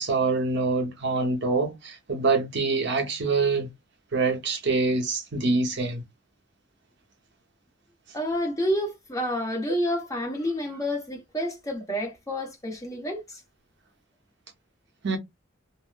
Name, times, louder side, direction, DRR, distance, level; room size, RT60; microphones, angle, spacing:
voice 1, 0.0-3.7 4.1-6.0 15.0-15.2, right 3 dB, 60° right, 0.8 m, -25 dB
voice 2, 8.1-13.4, equal, 15° left, 1.0 m, -29 dB
3.6 x 2.0 x 2.4 m
head